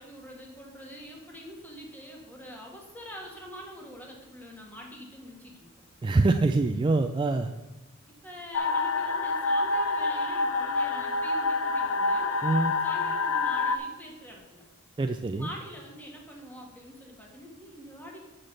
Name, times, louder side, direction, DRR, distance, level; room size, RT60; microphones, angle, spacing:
voice 1, 0.0-5.7 8.2-12.4 12.8-14.6 15.4-18.2, equal, 10° left, -1 dB, 1.6 m, -44 dB
voice 2, 6.0-7.5 12.4-12.7 15.0-15.5, right 3 dB, 25° right, 6 dB, 0.3 m, -25 dB
sound 1, 8.5-13.8, left 3 dB, 80° left, 0.6 m, -27 dB
6.7 x 5.9 x 6.5 m, 1.0 s
head